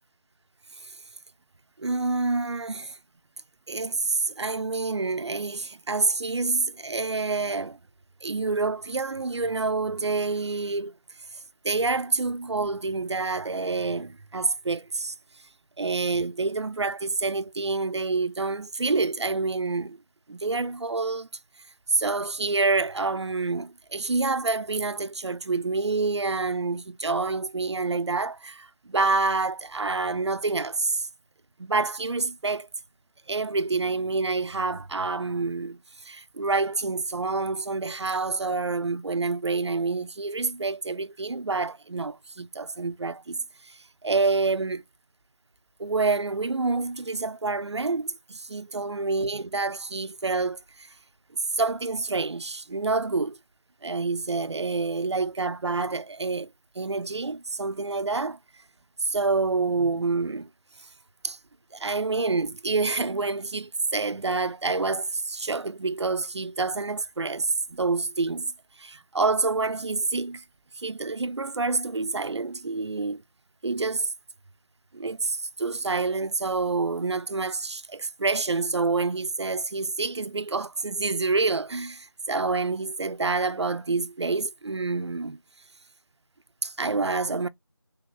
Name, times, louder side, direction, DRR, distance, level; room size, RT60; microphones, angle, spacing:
voice 1, 1.8-3.0 3.7-7.8 8.2-10.9 11.3-15.1 15.8-20.0 20.3-21.3 21.9-31.1 31.6-32.7 33.3-44.8 45.8-50.9 51.5-53.4 53.8-56.5 56.8-58.4 59.0-60.5 61.2-61.4 61.7-68.5 68.8-70.4 70.7-73.2 73.6-74.1 74.9-85.4 86.6-87.5, right 3 dB, 80° right, 0.4 m, -27 dB
3.4 x 2.3 x 3.0 m
figure-of-eight pair, 175°, 14 cm